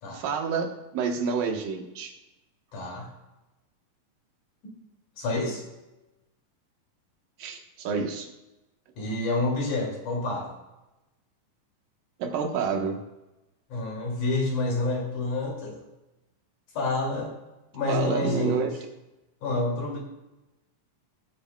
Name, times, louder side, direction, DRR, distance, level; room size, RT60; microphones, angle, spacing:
voice 1, 0.1-2.1 7.4-8.3 12.2-13.0 17.9-18.7, right 5 dB, 75° right, 4 dB, 2.9 m, -28 dB
voice 2, 2.7-3.1 4.6-4.8 5.2-5.6 9.0-10.5 13.7-15.8 16.7-17.4 17.7-18.7 19.4-20.0, left 2 dB, 60° left, -1 dB, 4.0 m, -28 dB
19.0 x 8.9 x 2.3 m, 0.99 s
omnidirectional pair, 3.9 m